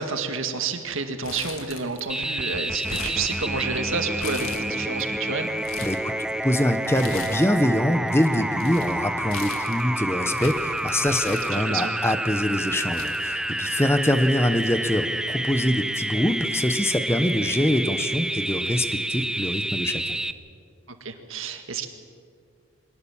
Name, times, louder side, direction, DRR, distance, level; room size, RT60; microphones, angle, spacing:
voice 1, 0.0-5.5 11.3-11.9 21.0-21.9, right 4 dB, 75° right, 6 dB, 1.9 m, -30 dB
Crumpling crinkling, 1.2-2.2 2.5-3.8 4.2-5.0 5.4-6.1 6.9-7.7 7.9-12.0 12.6-12.7 12.9-14.0 14.3-14.4 15.3-15.6, left 5 dB, 85° left, 2.1 m, -39 dB
sound 1, 2.1-20.3, right 1 dB, 5° right, 0.5 m, -29 dB
voice 2, 5.8-6.1 6.4-20.2, left 1 dB, 10° left, 10 dB, 1.0 m, -24 dB
23.0 x 18.5 x 7.3 m, 2.2 s
head